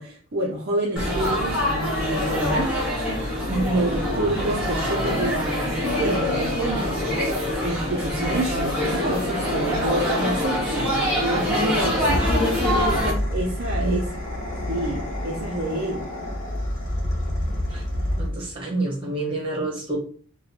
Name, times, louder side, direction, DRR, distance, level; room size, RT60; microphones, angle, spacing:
voice 1, 0.0-2.7 3.7-7.3 7.6-10.9 11.2-12.2 13.3-14.1 14.7-16.0, right 1 dB, 45° right, -3 dB, 0.6 m, -28 dB
Laughter / Chatter / Crowd, 1.0-13.1, left 1 dB, 5° right, 1.1 m, -24 dB
voice 2, 3.5-3.9 12.1-12.3 13.8-14.0 17.7-17.8 18.2-20.0, right 2 dB, 25° right, -3 dB, 1.3 m, -27 dB
sound 1, 11.7-18.5, left 1 dB, 35° left, 1.0 m, -28 dB
3.0 x 2.2 x 4.0 m, 0.44 s
head